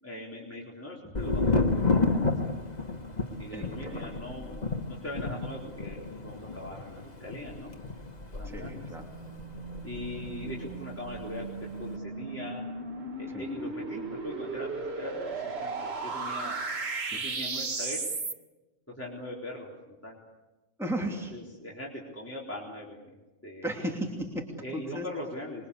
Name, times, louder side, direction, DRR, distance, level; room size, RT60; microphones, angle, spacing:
voice 1, 0.0-2.3 3.4-4.5 4.8-7.7 8.3-8.7 9.8-12.7 13.2-16.7 17.1-18.0 18.9-20.2 21.3-23.1 23.4-23.7 24.6-25.7, left 1 dB, 15° left, -5 dB, 4.1 m, -41 dB
Thunder, 1.1-10.8 11.0-11.8, left 3 dB, 45° left, 1.9 m, -31 dB
voice 2, 3.5-4.7 8.5-9.1 10.4-10.5 13.3-13.4 17.1-17.4 20.8-21.3 23.6-24.4 24.7-25.0, right 1 dB, 5° right, -1 dB, 2.9 m, -36 dB
sound 1, 8.3-18.3, right 3 dB, 80° right, 1.8 m, -36 dB
26.5 x 23.0 x 8.4 m, 1.1 s
omnidirectional pair, 1.0 m